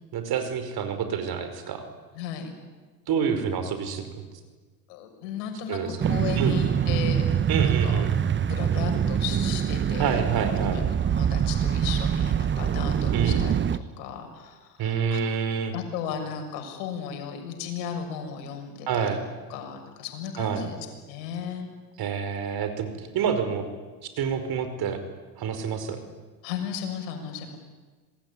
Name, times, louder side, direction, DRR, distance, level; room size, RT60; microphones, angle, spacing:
voice 1, 0.1-1.9 3.1-4.2 5.7-5.9 6.4-6.6 7.5-8.1 10.0-10.8 13.1-13.4 14.8-15.7 18.9-19.2 20.4-20.7 22.0-23.6 24.2-25.0 25.4-26.0, right 7 dB, 45° right, 9 dB, 5.2 m, -27 dB
voice 2, 2.1-2.5 4.9-8.0 8.5-10.2 10.6-15.2 15.7-19.2 19.5-20.8 21.1-21.7 26.4-27.6, left 7 dB, 65° left, 5 dB, 6.7 m, -35 dB
sound 1, 6.0-13.8, right 8 dB, 25° right, 0.9 m, -24 dB
26.5 x 21.0 x 9.9 m, 1.3 s
hypercardioid pair, 85°, 50 cm